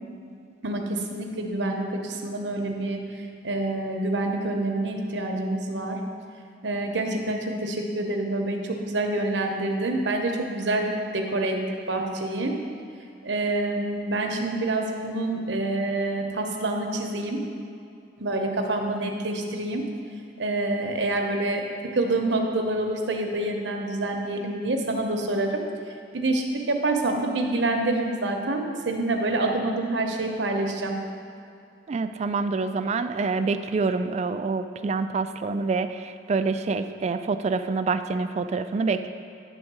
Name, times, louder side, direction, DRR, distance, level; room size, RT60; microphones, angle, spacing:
voice 1, 0.6-3.0 3.4-6.0 6.6-11.6 11.9-12.5 13.2-17.4 18.2-19.8 20.4-21.6 21.9-25.6 26.1-30.9, right 2 dB, 80° right, 2 dB, 0.9 m, -27 dB
voice 2, 31.9-39.1, right 4 dB, 40° right, 10 dB, 0.3 m, -26 dB
10.0 x 3.6 x 6.1 m, 2.5 s
head